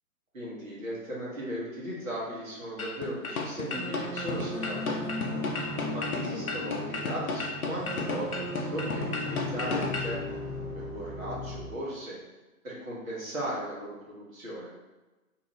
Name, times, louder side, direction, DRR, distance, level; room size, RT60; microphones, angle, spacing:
voice 1, 0.3-5.4 5.9-12.2 12.6-14.7, equal, 70° right, -5 dB, 1.3 m, -37 dB
sound 1, 2.8-10.2, left 3 dB, 80° left, 0.6 m, -34 dB
sound 2, 3.7-11.7, left 1 dB, 40° right, 1.0 m, -36 dB
2.9 x 2.3 x 3.0 m, 1.1 s
figure-of-eight pair, 125°, 43 cm